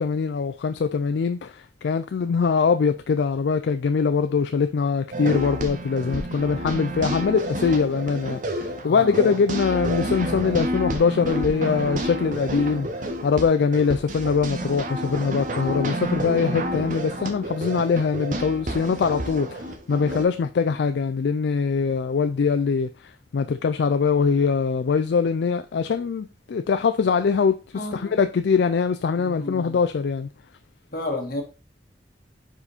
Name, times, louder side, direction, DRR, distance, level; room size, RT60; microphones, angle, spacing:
voice 1, 0.0-1.5 1.8-12.9 13.2-19.6 19.9-22.9 23.3-27.6 27.9-30.3, left 5 dB, 70° left, 0.4 m, -22 dB
sound 1, 5.1-20.2, right 1 dB, 45° right, 0.9 m, -30 dB
voice 2, 8.8-9.3 27.7-28.2 29.2-29.8 30.9-31.4, left 2 dB, 50° left, 1.6 m, -32 dB
5.1 x 4.9 x 4.1 m
head